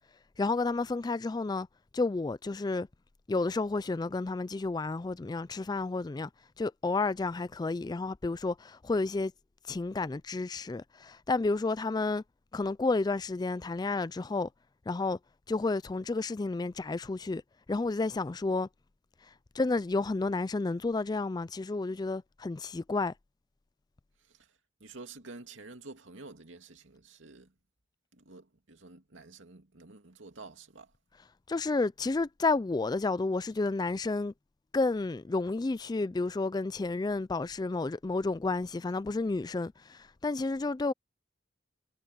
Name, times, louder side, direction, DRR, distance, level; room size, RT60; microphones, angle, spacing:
voice 1, 0.4-1.7 1.9-2.9 3.3-6.3 6.6-9.3 9.7-12.2 12.5-14.5 14.9-15.2 15.5-17.4 17.7-18.7 19.5-23.1 31.5-34.3 34.7-40.9, left 3 dB, 20° left, 0.3 m, -31 dB
voice 2, 24.8-27.5 28.1-30.9, right 3 dB, 80° right, 2.4 m, -49 dB
head